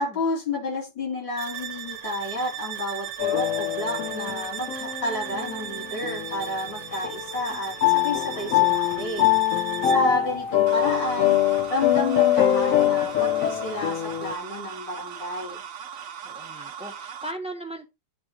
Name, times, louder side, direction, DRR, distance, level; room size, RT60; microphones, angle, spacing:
voice 1, 0.0-9.7 9.9-15.6, left 2 dB, 90° left, 3.8 m, -30 dB
sound 1, 1.4-10.2, right 10 dB, 80° right, 1.4 m, -37 dB
sound 2, 3.2-6.7 7.0-14.3, left 11 dB, 60° left, 1.0 m, -24 dB
sound 3, 10.7-17.3, right 8 dB, 60° right, 0.9 m, -39 dB
voice 2, 16.2-17.9, right 1 dB, 5° right, 0.5 m, -38 dB
10.5 x 3.8 x 2.8 m
omnidirectional pair, 2.0 m